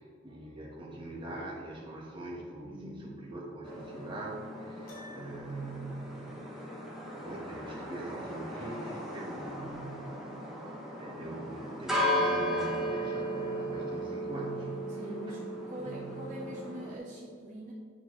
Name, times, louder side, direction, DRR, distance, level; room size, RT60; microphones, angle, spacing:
voice 1, 0.0-6.7 7.1-10.6 11.0-15.4 15.8-16.2, right 2 dB, 25° right, -4 dB, 1.4 m, -43 dB
voice 2, 2.6-3.2 15.0-15.4 15.7-17.7, equal, 45° right, -6 dB, 1.1 m, -43 dB
sound 1, 3.6-17.0, equal, ahead, 0.9 m, -36 dB
Piano, 4.9-5.7, left 1 dB, 50° left, 1.6 m, -51 dB
9.3 x 4.2 x 3.1 m, 2.1 s
head